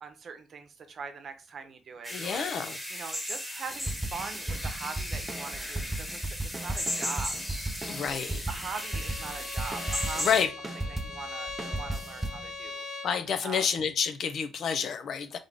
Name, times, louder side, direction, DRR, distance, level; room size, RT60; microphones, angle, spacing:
voice 1, 0.0-7.3 8.2-10.4 10.8-12.8 13.4-13.7, right 5 dB, 50° right, 0.9 m, -42 dB
sound 1, 2.0-10.4, equal, 5° left, 1.4 m, -36 dB
voice 2, 2.1-2.8 7.9-8.4 10.2-10.5 13.0-15.4, left 7 dB, 65° left, 0.7 m, -29 dB
sound 2, 3.7-10.4 10.6-12.5, right 2 dB, 20° right, 0.6 m, -35 dB
Bowed string instrument, 8.7-13.2, left 3 dB, 45° left, 1.2 m, -40 dB
3.7 x 3.6 x 3.5 m
cardioid pair, 90°, 0 cm